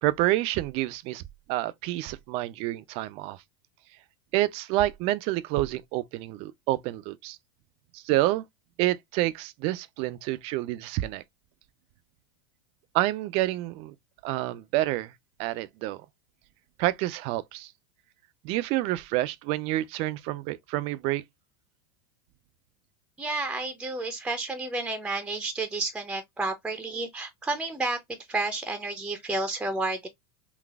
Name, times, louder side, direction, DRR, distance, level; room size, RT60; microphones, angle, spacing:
voice 1, 0.0-1.2 1.5-3.4 4.3-7.4 7.9-8.4 8.8-11.2 12.9-13.9 14.2-15.1 15.4-16.0 16.8-17.7 18.4-21.2, right 16 dB, 50° right, 0.5 m, -28 dB
voice 2, 23.2-30.1, right 2 dB, 10° right, 0.6 m, -31 dB
3.9 x 2.4 x 2.3 m
supercardioid pair, 115°, 13 cm